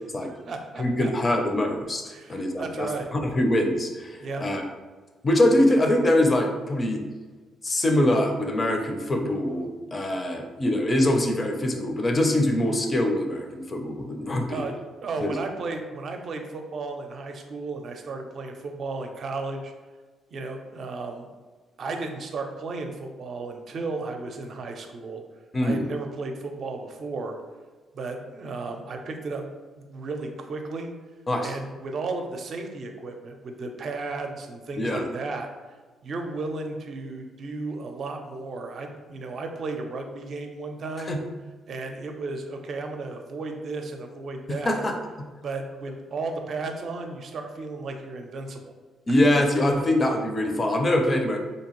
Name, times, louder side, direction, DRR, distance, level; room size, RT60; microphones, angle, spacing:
voice 1, 0.2-1.1 2.1-3.1 4.2-4.4 14.5-14.7 15.0-19.7 20.3-21.3 21.8-25.2 25.6-27.4 27.9-29.4 29.8-30.9 31.4-35.5 36.0-41.2 41.7-44.8 45.4-48.7, right 3 dB, 55° right, 4 dB, 0.5 m, -34 dB
voice 2, 0.8-4.6 5.2-7.0 7.6-14.6 15.2-15.3 25.5-25.9 31.3-31.5 34.8-35.1 41.1-41.2 44.5-45.3 49.1-51.4, left 1 dB, 30° left, 3 dB, 0.5 m, -24 dB
3.5 x 2.8 x 3.0 m, 1.3 s
cardioid pair, 90°, 0 cm